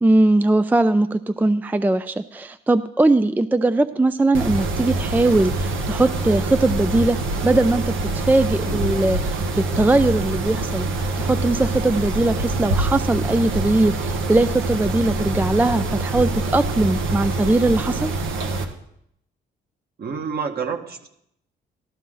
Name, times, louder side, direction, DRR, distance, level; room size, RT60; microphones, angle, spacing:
voice 1, 0.0-7.2 7.4-10.8 11.2-18.1, right 2 dB, 10° right, 12 dB, 0.4 m, -20 dB
Mechanisms, 4.3-18.6, right 2 dB, 80° right, 1.4 m, -25 dB
voice 2, 20.0-21.1, right 6 dB, 50° right, 4 dB, 1.7 m, -29 dB
13.5 x 13.0 x 3.9 m, 0.73 s
cardioid pair, 90°, 20 cm